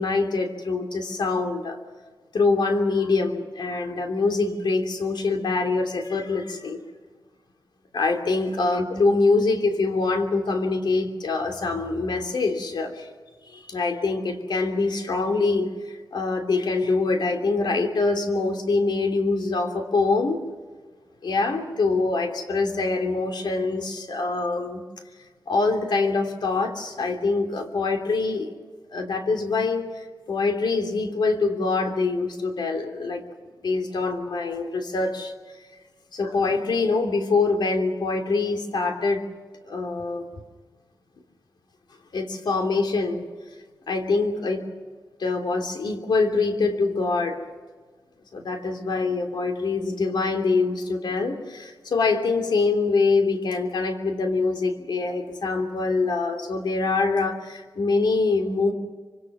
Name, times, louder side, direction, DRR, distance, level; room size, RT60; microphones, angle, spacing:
voice 1, 0.0-1.8 2.3-6.8 7.9-13.1 13.4-20.4 21.2-24.8 25.5-28.5 28.9-33.2 33.6-35.3 36.1-39.3 39.6-40.2 42.1-43.3 43.9-44.7 45.2-47.4 48.3-58.7, left 3 dB, 70° left, 4 dB, 3.1 m, -24 dB
25.5 x 25.0 x 6.2 m, 1.4 s
wide cardioid pair, 115°, 8 cm